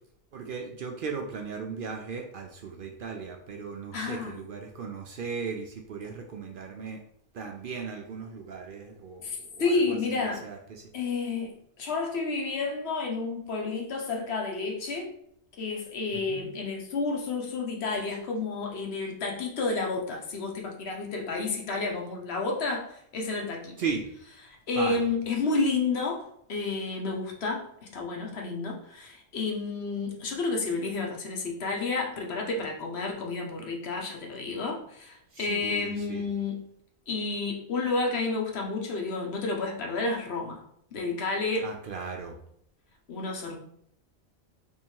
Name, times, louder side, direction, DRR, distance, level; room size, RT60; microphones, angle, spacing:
voice 1, 0.3-7.0 7.3-10.0 10.4-10.6 16.1-16.5 23.8-24.1 24.8-25.1 35.3-36.2 41.6-42.4, right 5 dB, 60° right, 2 dB, 0.6 m, -37 dB
voice 2, 3.9-4.3 9.2-10.5 10.9-15.1 15.6-23.8 24.5-36.6 37.1-40.6 40.9-41.7 43.1-43.6, left 3 dB, 65° left, 1 dB, 1.0 m, -31 dB
3.0 x 2.8 x 4.4 m, 0.69 s
omnidirectional pair, 1.2 m